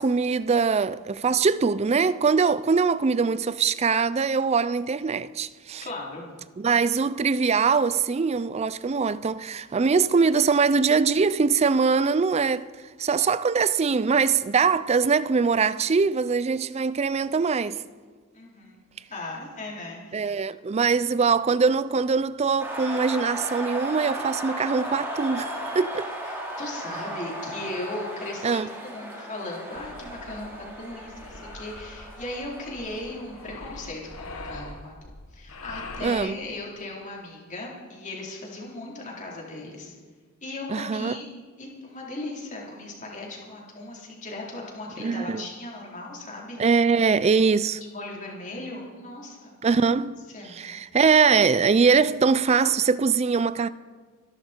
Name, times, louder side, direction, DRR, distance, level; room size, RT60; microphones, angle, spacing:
voice 1, 0.0-5.9 6.6-12.7 13.0-17.8 20.1-26.1 28.4-28.7 36.0-36.4 40.7-41.1 45.0-45.5 46.6-47.8 49.6-50.2 50.5-53.7, right 5 dB, 30° right, 0.4 m, -22 dB
voice 2, 5.8-6.3 18.3-18.8 19.1-20.3 26.2-34.9 35.3-39.9 40.4-41.3 41.6-46.8 47.8-49.9 50.3-50.6, left 2 dB, 35° left, 3.8 m, -37 dB
sound 1, 22.6-34.3, right 1 dB, 10° right, 3.3 m, -36 dB
sound 2, 29.7-36.1, left 2 dB, 80° left, 1.4 m, -43 dB
25.0 x 12.0 x 4.5 m
head